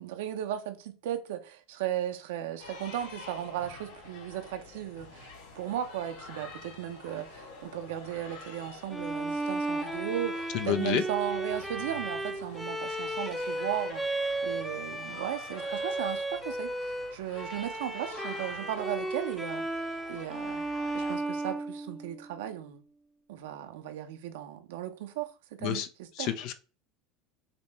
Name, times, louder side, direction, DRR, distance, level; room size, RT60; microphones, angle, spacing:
voice 1, 0.0-14.0 14.4-20.6 20.9-22.8 23.3-25.3 25.6-26.3, right 11 dB, 80° right, 0.6 m, -36 dB
sound 1, 2.6-21.2, left 3 dB, 85° left, 1.6 m, -48 dB
Bowed string instrument, 8.9-22.4, right 2 dB, ahead, 0.5 m, -34 dB
voice 2, 10.5-11.0 25.6-25.9 26.2-26.5, left 10 dB, 60° left, 0.5 m, -29 dB
5.1 x 2.1 x 3.1 m
supercardioid pair, 105°, 0 cm